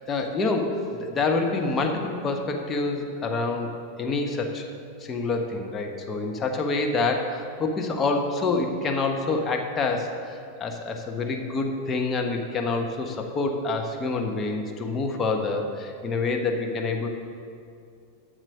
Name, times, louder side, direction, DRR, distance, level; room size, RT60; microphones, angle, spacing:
voice 1, 0.1-3.7 4.0-4.6 5.0-17.1, left 3 dB, 25° left, 3 dB, 1.0 m, -27 dB
7.5 x 6.7 x 6.4 m, 2.4 s
figure-of-eight pair, 90°, 0 cm